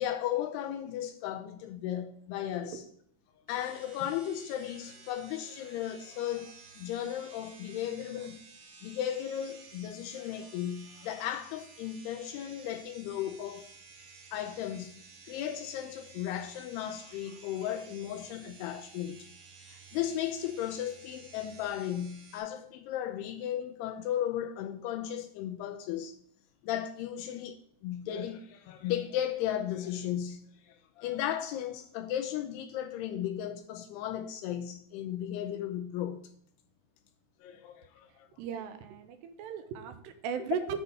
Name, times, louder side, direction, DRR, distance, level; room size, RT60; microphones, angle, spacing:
voice 1, 0.0-2.9 3.5-8.4 8.8-13.7 14.3-15.0 15.3-19.3 19.7-26.2 26.6-36.3 37.4-38.3, left 11 dB, 80° left, 2.4 m, -35 dB
sound 1, 3.5-22.4, right 4 dB, 60° right, 3.4 m, -54 dB
voice 2, 38.4-40.8, right 7 dB, 80° right, 2.7 m, -37 dB
7.9 x 4.0 x 6.7 m
omnidirectional pair, 5.0 m